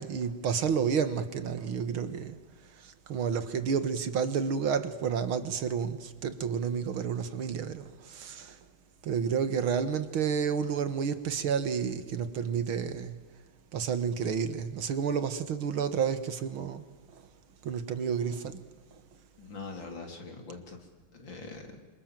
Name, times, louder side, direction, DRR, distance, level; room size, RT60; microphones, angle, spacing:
voice 1, 0.0-2.4 2.8-8.6 9.0-13.1 13.7-16.8 17.6-18.6, right 6 dB, 75° right, 2.4 m, -30 dB
voice 2, 19.4-21.8, left 3 dB, 65° left, 4.2 m, -43 dB
28.5 x 26.0 x 7.6 m
omnidirectional pair, 2.3 m